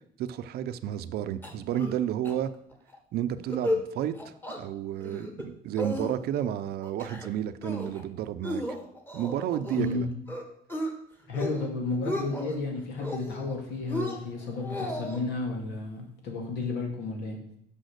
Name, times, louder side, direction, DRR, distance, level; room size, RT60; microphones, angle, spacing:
voice 1, 0.2-2.5 3.1-8.6 9.1-10.1, right 10 dB, 70° right, 12 dB, 0.6 m, -31 dB
sound 1, 1.4-2.0 2.2-2.3 2.7-3.0 3.4-3.8 4.1-4.6 5.0-5.4 5.8-6.4 6.8-7.3 7.6-8.0 8.4-9.9 10.3-10.9 11.3-11.7 11.9-12.6 13.0-13.5 13.9-15.2, left 1 dB, 10° left, 1.6 m, -34 dB
voice 2, 9.7-10.1 11.3-17.4, left 3 dB, 85° left, 2 dB, 2.2 m, -32 dB
6.4 x 5.6 x 6.5 m, 0.70 s
cardioid pair, 110°, 17 cm